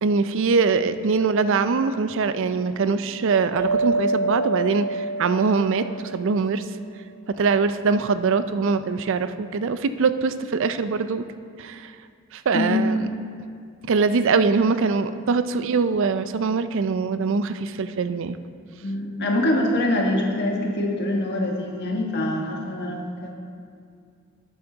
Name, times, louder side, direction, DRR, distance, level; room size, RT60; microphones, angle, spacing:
voice 1, 0.0-6.6 7.3-11.2 11.6-11.9 12.3-13.0 13.9-18.4, right 4 dB, 65° right, 12 dB, 0.4 m, -23 dB
sound 1, 3.6-6.5, right 2 dB, 40° right, 0.8 m, -26 dB
voice 2, 18.8-23.3, left 1 dB, 55° left, 0 dB, 1.4 m, -24 dB
11.5 x 8.7 x 4.0 m, 2.3 s
head